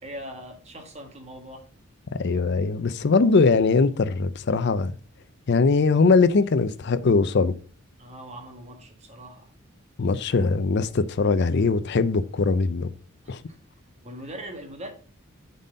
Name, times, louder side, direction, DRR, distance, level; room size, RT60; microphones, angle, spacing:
voice 1, 0.0-1.7 8.0-9.5 13.2-13.6 14.0-14.9, right 1 dB, 30° right, 1.4 m, -41 dB
voice 2, 2.2-5.0 5.5-7.5 10.0-12.9 13.3-13.4, left 4 dB, 50° left, 0.5 m, -21 dB
7.1 x 4.2 x 5.2 m
head